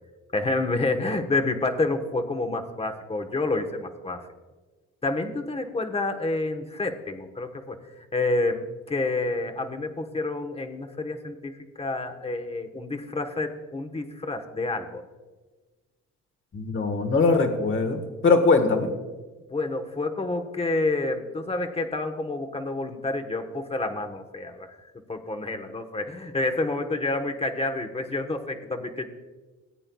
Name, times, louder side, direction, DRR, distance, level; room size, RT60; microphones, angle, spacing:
voice 1, 0.3-4.2 5.0-15.0 19.5-24.7 25.1-29.1, left 2 dB, 20° left, 6 dB, 1.1 m, -29 dB
voice 2, 16.5-18.9, left 3 dB, 40° left, 5 dB, 1.4 m, -21 dB
18.0 x 8.8 x 2.3 m, 1.3 s
cardioid pair, 90°, 30 cm